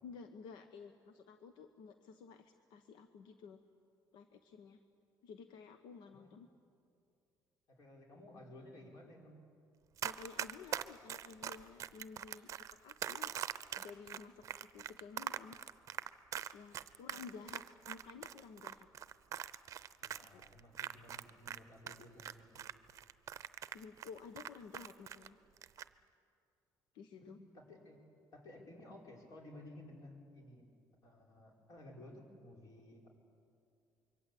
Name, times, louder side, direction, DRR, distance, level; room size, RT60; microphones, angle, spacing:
voice 1, 0.0-3.6 4.1-4.8 5.2-6.5 10.0-13.3 13.8-14.5 14.7-15.6 16.5-18.9 20.3-20.4 23.7-25.4 26.9-27.4, left 5 dB, 85° left, 8 dB, 1.1 m, -53 dB
voice 2, 7.7-9.4 17.1-17.3 20.0-22.7 27.2-28.0 28.3-30.6 31.0-33.1, left 1 dB, 50° left, 0 dB, 5.1 m, -55 dB
Run, 10.0-21.6 21.9-25.3 25.6-25.9, right 10 dB, 45° right, 0.7 m, -42 dB
25.5 x 23.0 x 8.5 m, 2.5 s
cardioid pair, 145°, 7 cm